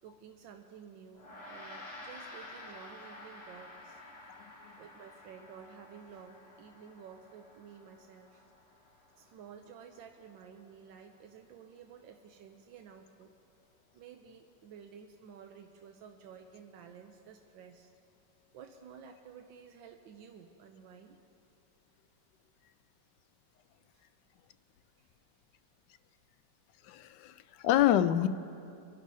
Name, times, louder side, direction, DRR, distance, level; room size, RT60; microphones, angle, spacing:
voice 1, 0.0-4.0 4.8-8.5 8.8-13.3 13.9-17.9 18.5-21.2 23.9-24.1 25.0-25.1, right 7 dB, 90° right, 4 dB, 1.4 m, -52 dB
Gong, 1.1-10.8, left 2 dB, 20° right, 4.0 m, -51 dB
voice 2, 26.8-28.3, left 12 dB, 75° left, 12 dB, 1.1 m, -27 dB
25.5 x 11.0 x 2.7 m, 2.7 s
omnidirectional pair, 2.0 m